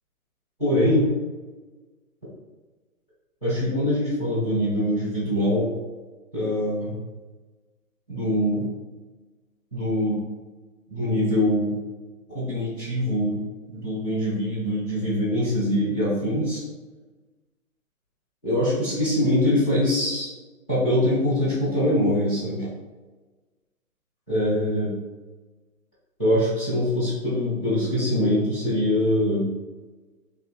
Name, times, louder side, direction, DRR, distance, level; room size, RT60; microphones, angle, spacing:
voice 1, 0.6-1.1 3.4-5.7 6.3-6.9 8.1-8.7 9.7-10.2 10.9-11.8 12.3-16.6 18.4-20.3 20.7-22.7 24.3-24.9 26.2-29.5, left 1 dB, 5° left, -13 dB, 0.4 m, -23 dB
3.1 x 2.8 x 3.0 m, 1.3 s
hypercardioid pair, 140°, 44 cm